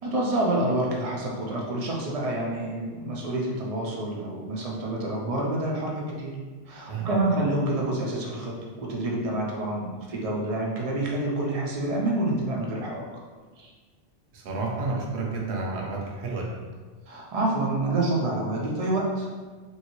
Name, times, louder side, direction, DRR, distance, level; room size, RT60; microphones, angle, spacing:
voice 1, 0.0-6.3 6.7-13.1 13.6-13.7 17.1-19.3, right 1 dB, 45° right, -2 dB, 0.5 m, -28 dB
voice 2, 6.9-7.2 14.3-16.5, right 3 dB, 65° right, -1 dB, 0.9 m, -30 dB
3.0 x 2.7 x 3.0 m, 1.4 s
omnidirectional pair, 1.2 m